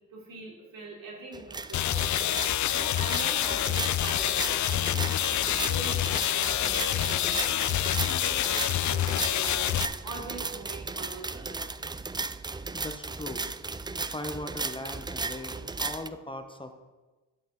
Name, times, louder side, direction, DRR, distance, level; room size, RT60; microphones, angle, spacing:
voice 1, 0.1-9.7 10.0-11.7, right 2 dB, 85° right, -3 dB, 3.7 m, -43 dB
sound 1, 1.3-16.1, right 3 dB, 15° right, 0.4 m, -36 dB
sound 2, 1.7-9.9, left 12 dB, 60° left, 0.5 m, -27 dB
voice 2, 12.7-13.5 14.1-16.7, left 1 dB, 15° left, 6 dB, 1.2 m, -39 dB
12.5 x 8.6 x 3.9 m, 1.2 s
cardioid pair, 65°, 33 cm